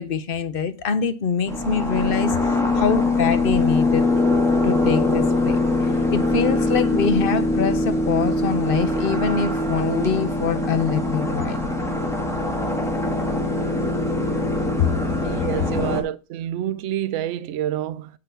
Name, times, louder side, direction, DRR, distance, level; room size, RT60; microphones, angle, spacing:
voice 1, 0.0-4.0 4.6-11.6 14.8-15.0, left 6 dB, 55° left, 0.8 m, -24 dB
sound 1, 1.5-16.0, left 2 dB, ahead, 1.4 m, -22 dB
voice 2, 15.2-18.1, right 11 dB, 70° right, 0.9 m, -28 dB
9.0 x 3.8 x 5.6 m
omnidirectional pair, 1.4 m